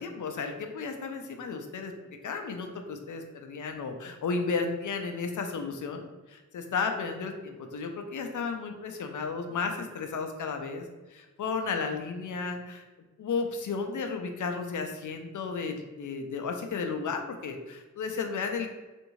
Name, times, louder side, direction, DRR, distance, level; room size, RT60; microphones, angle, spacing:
voice 1, 0.0-1.9 2.2-12.8 13.2-18.7, left 4 dB, 75° left, 5 dB, 0.5 m, -33 dB
3.5 x 2.6 x 3.0 m, 1.2 s
wide cardioid pair, 85°, 31 cm